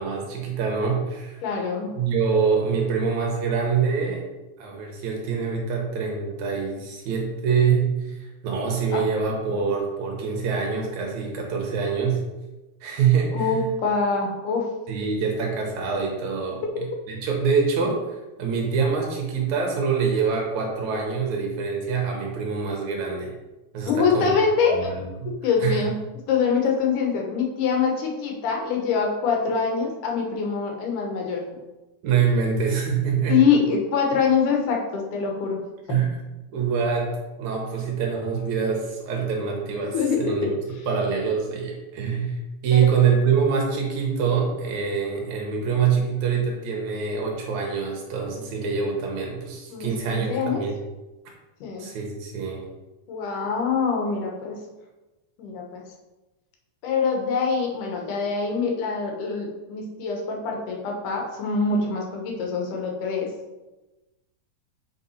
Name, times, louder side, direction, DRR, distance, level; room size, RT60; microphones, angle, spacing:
voice 1, 0.0-1.4 2.0-4.2 4.6-12.2 12.8-13.7 14.9-18.0 18.4-23.3 23.7-24.3 24.7-25.3 25.6-25.9 32.0-33.4 35.9-36.2 36.5-40.6 40.9-50.8 51.8-52.6, right 6 dB, 65° right, 0 dB, 1.9 m, -25 dB
voice 2, 1.4-1.9 8.9-9.0 13.3-14.6 23.9-24.9 25.4-25.9 26.3-31.4 33.3-35.6 39.9-40.5 42.7-42.9 49.7-50.6 51.6-51.9 53.1-54.6 55.4-55.8 56.8-63.3, left 5 dB, 70° left, 0 dB, 2.2 m, -24 dB
5.9 x 5.4 x 4.2 m, 1.1 s
omnidirectional pair, 4.5 m